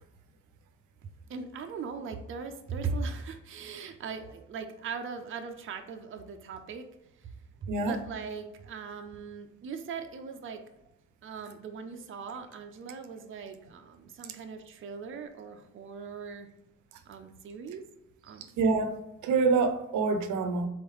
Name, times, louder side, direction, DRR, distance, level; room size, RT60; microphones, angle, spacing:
voice 1, 1.0-6.9 7.2-7.3 7.6-10.6 11.2-16.5 17.1-17.8 18.2-18.6, right 5 dB, 45° right, 5 dB, 0.6 m, -39 dB
voice 2, 18.6-20.7, right 4 dB, 75° right, 7 dB, 0.7 m, -26 dB
3.9 x 3.7 x 3.1 m, 0.90 s
cardioid pair, 90°, 30 cm